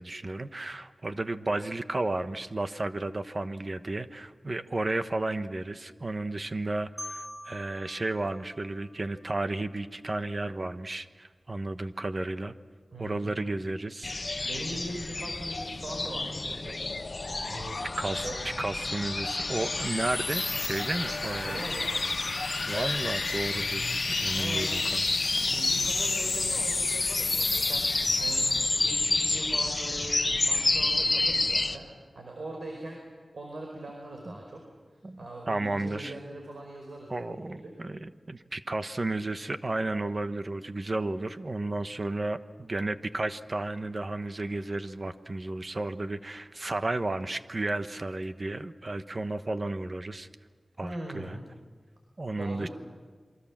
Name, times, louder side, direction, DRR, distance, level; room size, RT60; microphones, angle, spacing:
voice 1, 0.0-12.5 13.0-14.5 18.0-18.3 18.6-21.6 22.7-23.8 24.2-25.1 34.3-34.4 35.0-35.2 35.5-36.1 37.1-50.3 50.8-51.4 52.2-52.7, right 2 dB, 40° right, 10 dB, 1.2 m, -33 dB
Marimba xylophone, 7.0-9.8, left 1 dB, 20° left, 2.9 m, -45 dB
voice 2, 12.9-13.5 14.4-17.1 17.5-17.8 18.2-18.4 21.1-21.9 24.3-24.9 25.4-31.9 32.1-33.0 33.3-34.6 34.9-37.7 50.8-51.4 52.4-52.7, right 1 dB, 75° right, 1 dB, 4.9 m, -41 dB
sound 1, 14.0-31.8, left 2 dB, 40° left, 1.2 m, -30 dB
sound 2, 15.9-28.5, left 3 dB, 70° left, 1.6 m, -33 dB
27.5 x 24.0 x 7.4 m, 1.5 s
wide cardioid pair, 75°, 0 cm